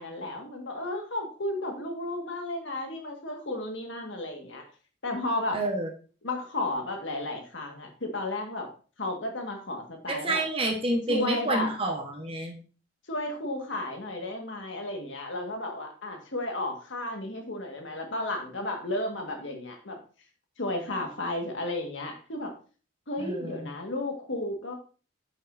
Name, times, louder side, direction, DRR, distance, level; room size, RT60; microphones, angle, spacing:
voice 1, 0.0-4.6 5.0-5.6 6.2-8.7 9.0-10.4 11.1-11.7 13.1-20.0 20.6-22.5 23.1-24.7, left 2 dB, 70° left, 3 dB, 1.6 m, -33 dB
voice 2, 5.5-5.9 10.1-12.6 23.2-23.7, right 2 dB, 30° right, 1 dB, 1.1 m, -29 dB
8.2 x 6.4 x 2.6 m, 0.38 s
head